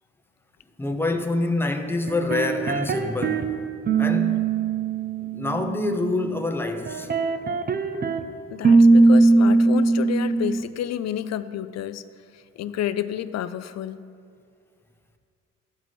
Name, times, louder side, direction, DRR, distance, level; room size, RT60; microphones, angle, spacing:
voice 1, 0.8-3.5 4.0-4.6 5.2-7.1, left 2 dB, 5° left, 0.8 m, -26 dB
sound 1, 2.1-3.5 3.9-6.4 6.9-8.2 8.6-10.6, right 3 dB, 30° right, 0.7 m, -20 dB
voice 2, 8.5-12.0 12.3-14.0, left 10 dB, 60° left, 0.5 m, -30 dB
13.0 x 4.7 x 6.0 m
cardioid pair, 90°, 30 cm